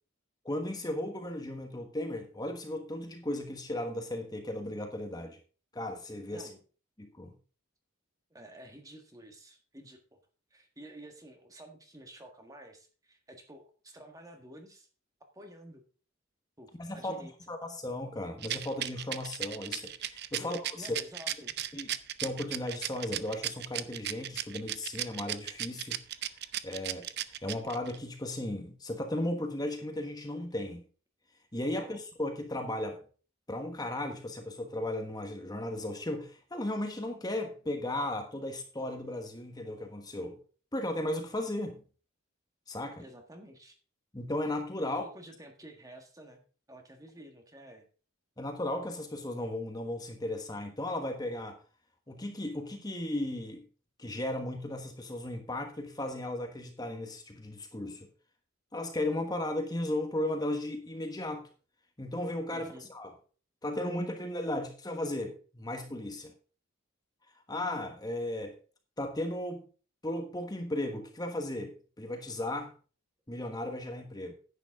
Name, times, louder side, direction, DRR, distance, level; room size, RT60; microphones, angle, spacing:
voice 1, 0.4-5.4 5.7-6.5 7.0-7.3 16.8-21.0 21.7-21.9 22.2-26.0 26.6-30.8 31.5-33.0 33.5-40.4 40.7-41.8 42.7-43.0 44.1-45.0 48.4-51.6 52.1-53.6 54.0-58.1 58.7-61.5 62.0-63.1 63.6-66.3 67.5-68.6 69.0-69.6 70.0-72.7 73.3-74.3, left 1 dB, 20° left, 1.3 m, -35 dB
voice 2, 6.3-6.6 8.3-10.2 10.5-14.9 15.3-15.8 16.6-17.3 20.4-21.6 31.6-32.0 43.0-43.8 45.0-47.9 62.5-62.9, right 1 dB, 15° right, 1.6 m, -51 dB
Rattle, 18.4-28.0, right 12 dB, 50° right, 0.6 m, -35 dB
10.5 x 9.2 x 3.6 m
head